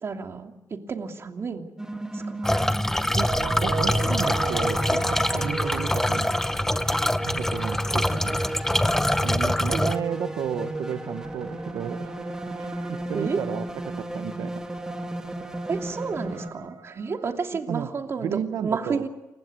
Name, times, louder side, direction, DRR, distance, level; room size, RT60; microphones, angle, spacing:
voice 1, 0.0-1.7 2.1-2.7 9.7-9.9 13.1-13.4 15.7-19.1, right 5 dB, 45° right, 4 dB, 2.8 m, -31 dB
sound 1, 1.8-16.5, right 1 dB, 10° right, 2.7 m, -34 dB
sound 2, 2.4-10.0, left 1 dB, 5° left, 0.8 m, -24 dB
sound 3, 3.3-9.5 10.3-17.3, right 6 dB, 65° right, 4.8 m, -40 dB
voice 2, 3.6-6.4 7.2-8.4 9.2-12.1 12.6-14.6 17.7-17.9 18.2-19.1, right 9 dB, 85° right, 8 dB, 1.1 m, -33 dB
29.0 x 15.5 x 9.6 m, 1.0 s
cardioid pair, 105°, 6 cm